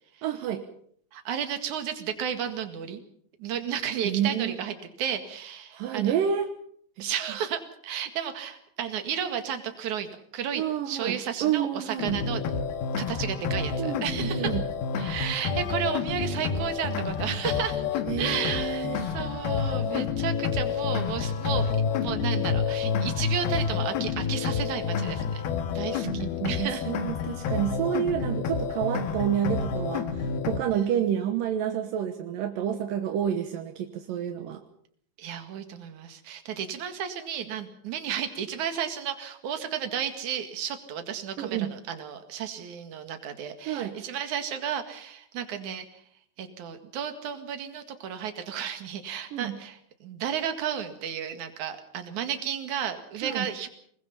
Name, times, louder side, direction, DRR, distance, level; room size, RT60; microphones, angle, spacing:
voice 1, 0.2-0.6 4.0-4.5 5.7-6.5 7.0-7.1 10.6-12.2 13.8-14.6 18.1-19.0 26.0-34.6 41.4-41.7 43.7-44.0 49.3-49.6 53.2-53.5, right 9 dB, 70° right, 6 dB, 2.2 m, -29 dB
voice 2, 1.1-3.0 3.4-6.1 7.0-12.4 13.0-14.6 15.0-21.7 22.0-25.4 25.7-26.9 30.7-31.0 35.2-45.9 46.4-53.7, right 8 dB, 50° right, 7 dB, 2.7 m, -33 dB
sound 1, 12.0-30.6, left 6 dB, 70° left, 2.9 m, -29 dB
24.5 x 20.5 x 5.7 m, 0.63 s
omnidirectional pair, 5.3 m